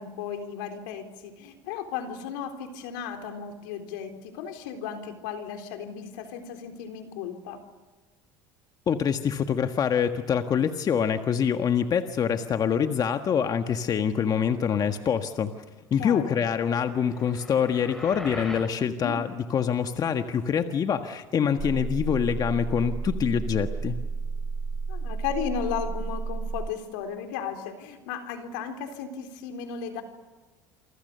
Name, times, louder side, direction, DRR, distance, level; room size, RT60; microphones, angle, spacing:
voice 1, 0.0-7.6 16.0-16.4 18.9-19.2 24.9-30.0, left 7 dB, 85° left, 6 dB, 3.8 m, -35 dB
voice 2, 8.9-15.5 15.9-24.0, left 7 dB, 40° left, 7 dB, 1.5 m, -25 dB
sound 1, 16.6-18.8, left 1 dB, 5° left, 3.7 m, -41 dB
sound 2, 21.6-26.7, right 4 dB, 20° right, 0.8 m, -32 dB
28.0 x 25.0 x 6.8 m, 1.2 s
supercardioid pair, 100°, 10 cm